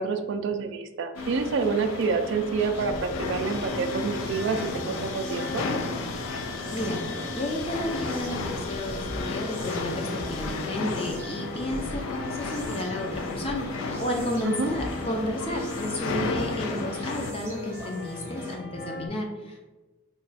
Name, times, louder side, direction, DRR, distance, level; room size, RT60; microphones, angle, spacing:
voice 1, 0.0-5.6 14.4-14.7, right 4 dB, 65° right, 7 dB, 0.3 m, -28 dB
sound 1, 1.1-18.5, equal, 10° right, 0.6 m, -43 dB
sound 2, 1.2-17.3, left 3 dB, 90° left, 0.4 m, -34 dB
sound 3, 2.8-19.1, left 1 dB, 65° left, 0.8 m, -39 dB
voice 2, 6.7-7.0 7.3-19.6, left 1 dB, 30° left, 1 dB, 0.5 m, -32 dB
3.1 x 2.3 x 3.9 m, 1.2 s
head